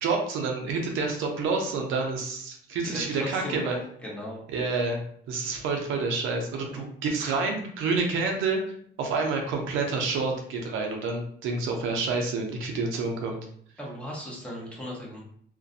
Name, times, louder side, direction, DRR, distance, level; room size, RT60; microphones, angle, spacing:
voice 1, 0.0-3.8 4.5-5.0 5.3-8.6 9.0-13.4, right 4 dB, 90° right, 2 dB, 0.5 m, -28 dB
voice 2, 3.3-4.4 5.4-5.5 6.6-6.8 13.8-15.2, equal, 5° left, -4 dB, 0.9 m, -37 dB
2.3 x 2.2 x 2.6 m, 0.62 s
cardioid pair, 90°, 20 cm